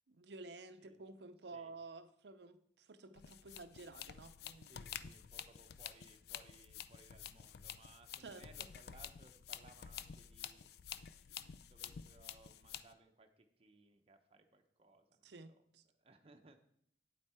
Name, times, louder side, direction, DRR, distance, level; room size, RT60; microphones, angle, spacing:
voice 1, 0.1-4.7 5.0-5.1 8.2-8.7 15.2-15.8, right 3 dB, 70° right, 11 dB, 0.6 m, -53 dB
sound 1, 3.2-12.9, left 9 dB, 60° left, 0.4 m, -50 dB
voice 2, 4.7-10.7 11.3-15.6 16.0-16.6, right 2 dB, 35° right, 5 dB, 0.8 m, -64 dB
8.7 x 8.1 x 4.3 m, 0.68 s
head